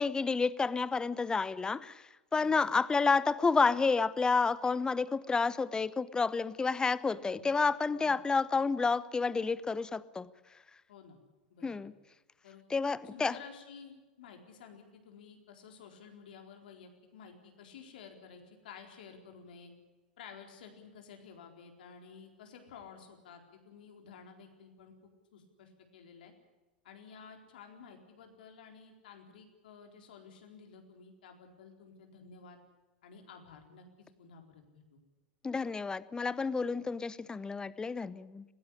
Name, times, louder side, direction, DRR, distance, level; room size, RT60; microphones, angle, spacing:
voice 1, 0.0-2.0 2.3-10.3 11.6-11.9 12.7-13.3 35.4-38.4, left 4 dB, 15° left, 18 dB, 0.9 m, -30 dB
voice 2, 7.2-8.2 10.9-11.2 11.5-11.9 12.4-19.7 20.2-26.3 26.8-32.6 33.0-33.8 34.2-35.0, left 6 dB, 70° left, 4 dB, 4.2 m, -53 dB
21.0 x 16.0 x 10.0 m, 1.2 s
hypercardioid pair, 90°, 5 cm